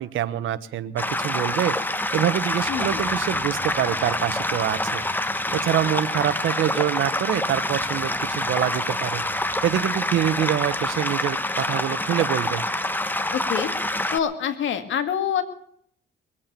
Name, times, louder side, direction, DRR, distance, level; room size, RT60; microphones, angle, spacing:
voice 1, 0.0-1.8 2.1-5.0 5.5-9.2 9.6-12.6, right 11 dB, 75° right, 15 dB, 1.1 m, -25 dB
sound 1, 1.0-14.2, left 1 dB, 10° left, 1.2 m, -26 dB
voice 2, 2.7-3.0 13.3-13.7 14.1-15.4, left 8 dB, 75° left, 9 dB, 1.9 m, -26 dB
21.5 x 8.8 x 6.8 m, 0.66 s
cardioid pair, 90°, 20 cm